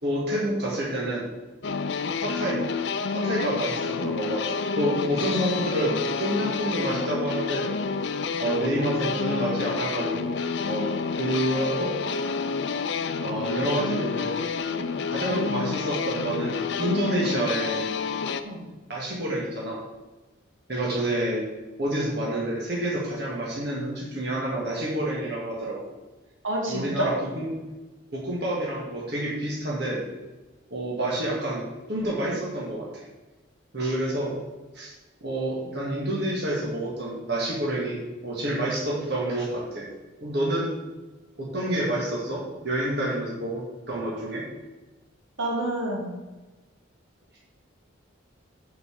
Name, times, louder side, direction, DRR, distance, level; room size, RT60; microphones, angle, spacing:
voice 1, 0.0-1.3 2.2-2.6 3.1-7.7 8.4-10.3 10.6-10.9 11.2-11.9 13.2-14.4 15.1-17.9 18.9-19.8 20.7-21.4 21.8-25.8 26.7-27.5 28.1-30.0 30.7-31.6 31.9-33.0 33.7-34.3 34.7-34.9 35.2-39.9 40.2-40.7 41.4-44.4, right 1 dB, 55° right, -4 dB, 2.0 m, -28 dB
sound 1, 1.6-18.4, left 5 dB, 60° left, 0.5 m, -29 dB
voice 2, 26.4-27.1 45.4-46.1, right 1 dB, 75° right, -2 dB, 2.3 m, -28 dB
6.1 x 6.1 x 6.9 m, 1.2 s
head